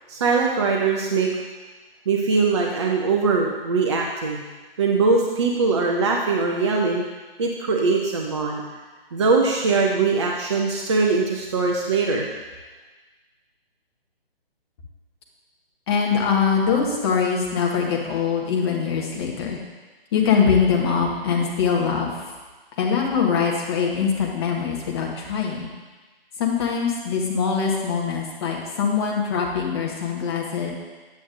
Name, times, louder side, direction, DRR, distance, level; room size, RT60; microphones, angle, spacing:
voice 1, 0.1-1.3 2.1-4.4 4.8-7.0 7.4-8.6 9.1-12.3, right 4 dB, 30° right, 0 dB, 0.6 m, -21 dB
voice 2, 15.9-19.6 20.1-22.2 22.8-25.7 26.4-30.7, left 6 dB, 25° left, -1 dB, 1.1 m, -23 dB
9.2 x 8.3 x 2.6 m, 1.3 s
figure-of-eight pair, 140°, 30 cm